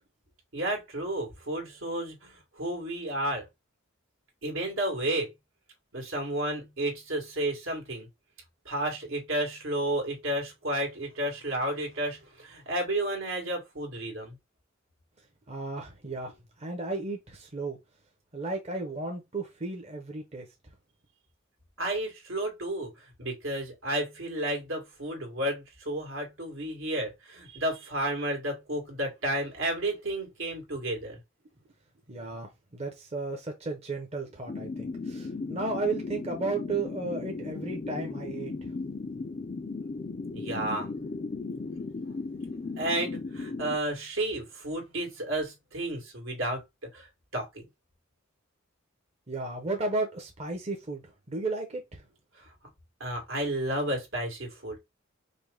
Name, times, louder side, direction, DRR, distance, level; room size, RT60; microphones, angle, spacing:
voice 1, 0.5-3.4 4.4-5.3 5.9-8.1 8.7-14.4 21.8-31.2 40.3-40.9 42.8-46.6 46.9-47.1 47.3-47.7 52.4-52.5 53.0-54.8, right 1 dB, 75° right, 2.0 m, -32 dB
voice 2, 15.5-17.8 18.3-20.5 32.1-38.7 49.3-52.0, right 3 dB, 30° right, 0.8 m, -34 dB
sound 1, 34.5-43.8, left 3 dB, 35° left, 0.4 m, -36 dB
5.2 x 2.1 x 3.6 m
head